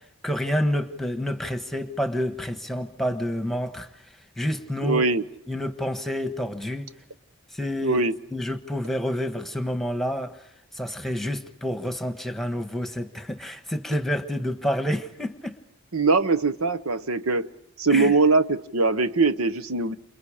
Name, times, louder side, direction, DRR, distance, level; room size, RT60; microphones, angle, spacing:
voice 1, 0.2-3.9 4.4-5.0 5.5-6.9 7.6-8.0 8.3-10.3 10.8-15.6 17.9-18.1, equal, ahead, 1.4 m, -28 dB
voice 2, 4.8-5.2 7.8-8.2 15.9-17.5 17.8-20.0, right 3 dB, 80° right, 1.1 m, -22 dB
29.5 x 28.0 x 5.1 m
head